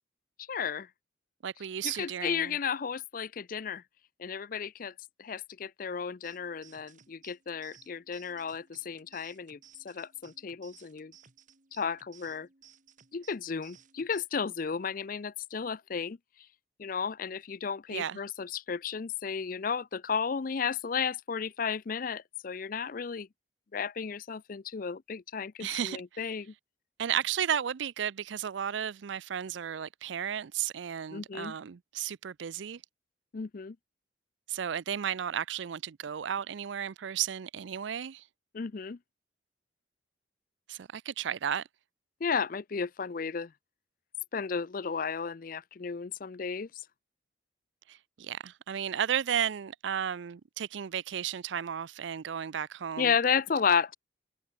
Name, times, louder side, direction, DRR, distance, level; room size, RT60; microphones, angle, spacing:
voice 1, 0.5-0.9 1.8-3.8 4.2-4.9 5.2-9.6 9.8-11.1 11.7-12.5 13.1-16.2 16.8-23.3 23.7-26.5 31.1-31.5 33.3-33.8 38.5-39.0 42.2-43.5 44.3-46.7 53.0-53.9, left 6 dB, 45° left, 0.5 m, -33 dB
voice 2, 1.4-2.5 17.9-18.2 25.6-26.0 27.0-32.8 34.5-38.2 40.7-41.6 47.9-53.1, right 9 dB, 70° right, 0.4 m, -33 dB
sound 1, 6.2-14.2, right 9 dB, 40° right, 1.6 m, -59 dB
head